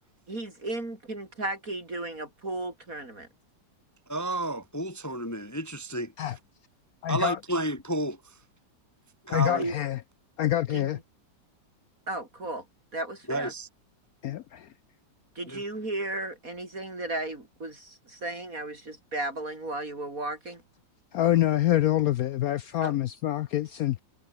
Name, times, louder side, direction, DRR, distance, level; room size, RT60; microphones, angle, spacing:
voice 1, 0.3-3.3 9.5-9.7 10.7-10.9 12.1-12.6 12.9-13.5 15.3-20.6 22.8-22.9, right 2 dB, 45° right, 4.9 m, -34 dB
voice 2, 4.1-6.1 7.1-8.2 9.3-9.7 13.3-13.7 15.5-15.6, right 1 dB, 15° left, 0.8 m, -31 dB
voice 3, 7.0-7.4 9.3-10.0 10.4-11.0 14.2-14.7 21.1-24.0, left 13 dB, 75° left, 0.8 m, -26 dB
omnidirectional pair, 2.1 m